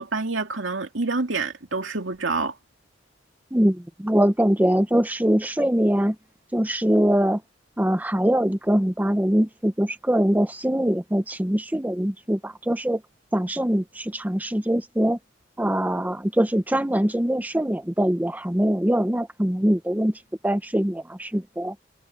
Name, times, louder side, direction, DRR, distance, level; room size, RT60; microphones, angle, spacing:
voice 1, 0.0-2.5, right 3 dB, 90° right, 2.5 m, -27 dB
voice 2, 3.5-6.2 6.5-7.4 7.8-13.0 13.3-15.2 15.6-21.7, equal, 10° right, 0.7 m, -23 dB
head